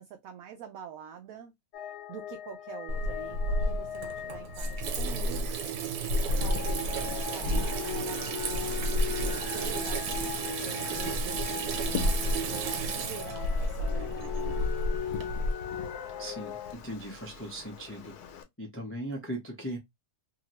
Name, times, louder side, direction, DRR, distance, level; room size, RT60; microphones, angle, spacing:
voice 1, 0.0-1.5 2.1-5.8 6.4-14.8, right 8 dB, 70° right, 0.9 m, -46 dB
sound 1, 1.7-5.5 6.1-16.7, left 10 dB, 65° left, 0.7 m, -39 dB
Water tap faucet / Sink (filling or washing), 2.9-15.5, right 1 dB, 90° right, 1.2 m, -31 dB
Wind, 6.1-18.4, left 7 dB, 85° left, 1.2 m, -44 dB
voice 2, 16.2-18.1 18.6-19.8, right 1 dB, 20° left, 0.3 m, -38 dB
2.8 x 2.6 x 2.9 m
omnidirectional pair, 1.7 m